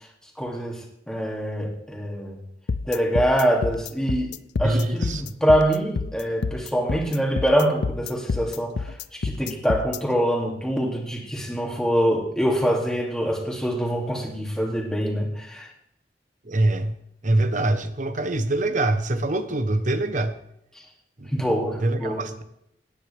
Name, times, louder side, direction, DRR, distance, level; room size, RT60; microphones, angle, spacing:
voice 1, 0.4-2.4 2.9-4.3 4.6-15.7 21.3-22.2, equal, 5° left, -1 dB, 2.6 m, -24 dB
sound 1, 2.7-10.0, left 4 dB, 70° left, 0.5 m, -28 dB
voice 2, 4.6-5.3 16.4-17.0 17.2-20.4 21.2-21.3 21.8-22.4, right 2 dB, 45° right, 9 dB, 1.0 m, -24 dB
18.0 x 10.0 x 3.5 m, 0.77 s
head